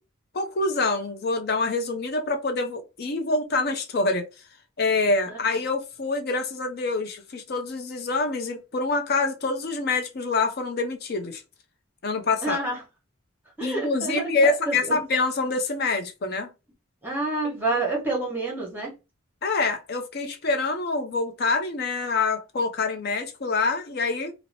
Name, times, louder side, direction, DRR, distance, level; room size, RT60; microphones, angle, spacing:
voice 1, 0.3-4.3 4.8-11.4 12.0-12.6 13.6-16.5 17.7-17.8 19.4-24.3, left 3 dB, 50° left, 0.5 m, -26 dB
voice 2, 12.4-12.8 13.6-15.0 17.0-18.9, right 2 dB, 10° right, 1.0 m, -28 dB
2.7 x 2.0 x 2.6 m
head